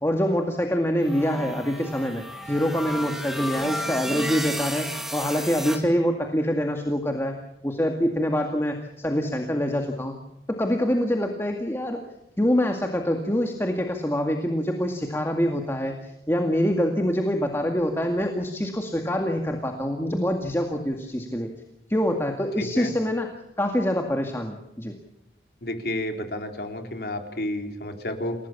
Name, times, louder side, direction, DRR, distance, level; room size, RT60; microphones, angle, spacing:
voice 1, 0.0-7.3 7.6-10.1 10.5-12.0 12.4-16.0 16.3-21.5 21.9-23.3 23.6-24.9, equal, 15° left, 3 dB, 2.1 m, -25 dB
sound 1, 1.0-5.8, equal, ahead, 2.7 m, -33 dB
voice 2, 22.6-22.9 25.6-28.4, left 1 dB, 65° left, 4 dB, 3.9 m, -31 dB
28.5 x 17.5 x 7.3 m, 0.86 s
head